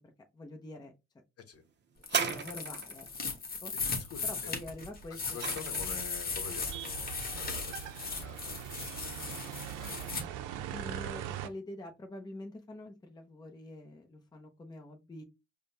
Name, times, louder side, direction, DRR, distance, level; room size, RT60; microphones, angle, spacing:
voice 1, 0.3-0.9 2.2-3.7 4.3-5.2 5.6-5.8 10.7-15.2, left 1 dB, 15° left, 0.6 m, -46 dB
sound 1, 2.0-10.2, left 4 dB, 30° left, 1.1 m, -37 dB
sound 2, 2.0-3.1 4.8-6.2 7.0-7.1, right 6 dB, 35° right, 0.6 m, -35 dB
voice 2, 4.0-4.5 5.1-7.1 7.3-7.9 8.2-10.3, left 6 dB, 50° left, 0.9 m, -48 dB
sound 3, 6.4-11.5, right 11 dB, 85° right, 0.6 m, -41 dB
5.0 x 2.2 x 2.7 m
cardioid pair, 105°, 30 cm